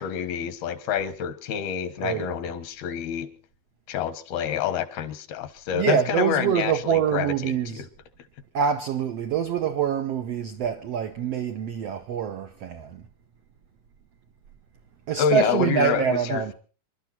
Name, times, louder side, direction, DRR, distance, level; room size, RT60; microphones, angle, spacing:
voice 1, 0.0-3.3 3.9-7.9 15.2-16.4, left 8 dB, 85° left, 3.3 m, -28 dB
voice 2, 2.0-2.4 5.7-7.9 8.5-13.0 15.1-16.5, right 8 dB, 85° right, 1.4 m, -25 dB
27.0 x 12.0 x 4.3 m
omnidirectional pair, 4.3 m